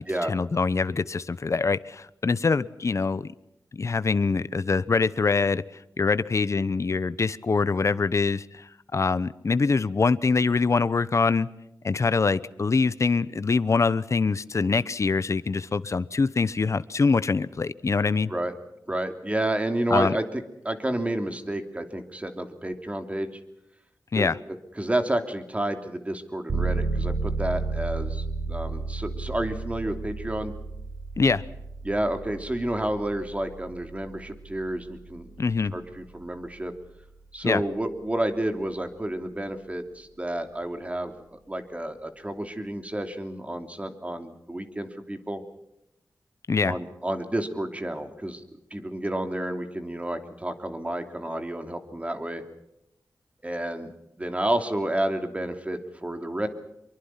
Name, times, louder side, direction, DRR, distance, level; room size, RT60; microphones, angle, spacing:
voice 1, 0.0-3.3 3.7-5.6 6.0-8.6 8.9-11.5 11.8-18.3 19.9-20.1 24.1-24.4 31.2-31.4 35.4-35.7 37.4-37.6 46.5-46.7, left 4 dB, 45° left, 0.9 m, -24 dB
voice 2, 18.9-23.4 24.1-24.3 24.8-30.5 31.8-35.4 35.7-36.7 37.3-45.4 46.7-48.4 48.7-52.4 53.4-53.9 54.2-56.5, right 1 dB, 20° right, 2.8 m, -30 dB
sound 1, 26.5-37.0, right 3 dB, 90° right, 4.3 m, -33 dB
25.5 x 23.5 x 5.8 m
wide cardioid pair, 95°, 7 cm